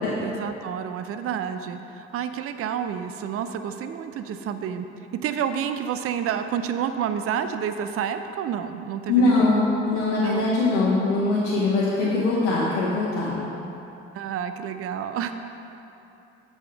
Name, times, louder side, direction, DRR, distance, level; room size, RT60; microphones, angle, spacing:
voice 1, 0.1-4.9 5.2-9.4 10.2-10.5 14.1-15.3, right 8 dB, 45° right, 9 dB, 0.5 m, -29 dB
voice 2, 9.1-13.4, left 3 dB, 85° left, -8 dB, 1.0 m, -22 dB
7.5 x 5.5 x 5.9 m, 2.9 s
hypercardioid pair, 45°, 32 cm